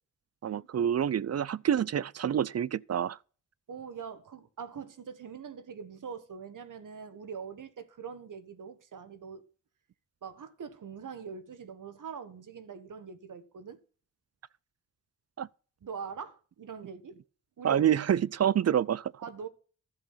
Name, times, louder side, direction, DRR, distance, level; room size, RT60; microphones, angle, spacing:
voice 1, 0.4-3.2 15.4-15.5 17.6-19.1, right 9 dB, 55° right, 0.5 m, -27 dB
voice 2, 3.7-9.5 10.2-13.8 15.8-17.2 17.6-17.8 19.2-19.5, right 6 dB, 80° right, 1.5 m, -43 dB
12.0 x 7.8 x 5.6 m
cardioid pair, 60°, 31 cm